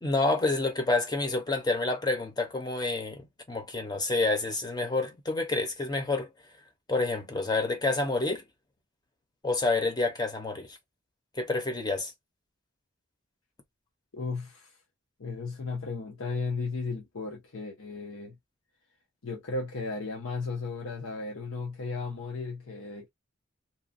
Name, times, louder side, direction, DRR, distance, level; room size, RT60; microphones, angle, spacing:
voice 1, 0.0-6.3 6.9-8.4 9.4-10.8 11.4-12.1, left 3 dB, 20° left, 0.7 m, -28 dB
voice 2, 14.1-14.7 15.2-18.4 19.2-23.1, left 4 dB, 85° left, 0.8 m, -35 dB
2.9 x 2.3 x 2.5 m
head